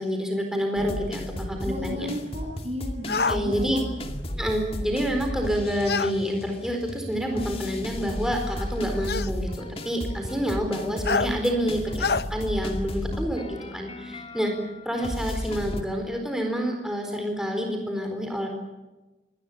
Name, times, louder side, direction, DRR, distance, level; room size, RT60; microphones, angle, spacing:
voice 1, 0.0-2.1 3.2-3.8 4.4-14.6 14.8-18.5, equal, 5° right, 2 dB, 4.2 m, -28 dB
sound 1, 0.7-15.8, left 1 dB, 30° left, 2.2 m, -34 dB
voice 2, 1.6-3.8, left 1 dB, 35° right, 0 dB, 7.0 m, -34 dB
sound 2, 3.1-3.4 5.8-6.1 7.4-7.5 9.1-9.3 11.0-11.3 12.0-12.2, left 4 dB, 60° left, 0.9 m, -25 dB
25.0 x 20.0 x 8.6 m, 1.1 s
head